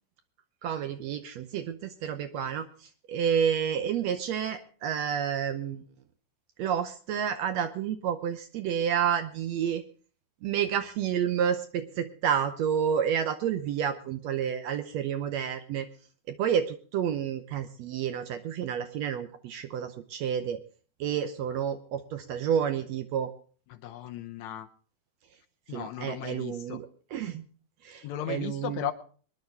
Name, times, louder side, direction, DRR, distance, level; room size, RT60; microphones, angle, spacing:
voice 1, 0.6-5.8 6.6-9.8 10.4-15.9 16.3-20.6 21.0-23.3 25.7-27.4 27.8-28.9, right 8 dB, 70° right, 9 dB, 1.7 m, -30 dB
voice 2, 23.7-24.7 25.7-26.8 28.0-28.9, left 11 dB, 75° left, 7 dB, 1.9 m, -36 dB
23.5 x 10.5 x 3.4 m, 0.42 s
omnidirectional pair, 3.6 m